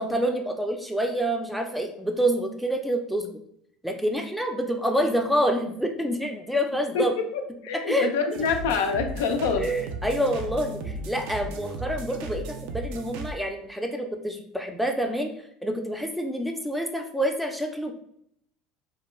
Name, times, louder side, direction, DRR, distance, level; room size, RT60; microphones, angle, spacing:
voice 1, 0.0-3.3 3.8-7.1 7.7-8.1 9.6-15.3 15.6-17.9, equal, ahead, 3 dB, 0.4 m, -27 dB
voice 2, 6.9-9.7, left 5 dB, 85° left, 5 dB, 0.3 m, -26 dB
sound 1, 8.3-13.3, right 2 dB, 75° right, 0.3 m, -36 dB
2.2 x 2.1 x 3.0 m, 0.69 s
supercardioid pair, 100°, 0 cm